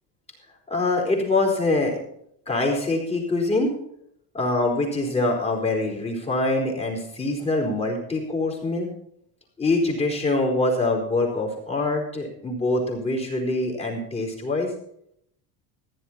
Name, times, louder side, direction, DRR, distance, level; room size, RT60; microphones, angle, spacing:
voice 1, 0.7-2.0 2.5-3.7 4.3-8.9 9.6-14.7, left 2 dB, 15° left, 0 dB, 3.8 m, -24 dB
14.0 x 11.0 x 4.3 m, 0.71 s
cardioid pair, 150°, 46 cm